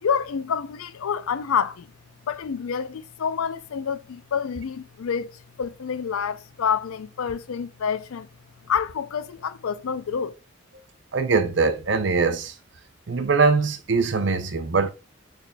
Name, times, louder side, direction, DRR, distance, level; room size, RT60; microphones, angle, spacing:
voice 1, 0.0-1.9 2.3-8.3 8.7-10.3, left 7 dB, 85° left, 0.4 m, -28 dB
voice 2, 11.1-12.5 13.1-14.9, right 4 dB, 55° right, 0.6 m, -22 dB
6.6 x 3.5 x 2.2 m
head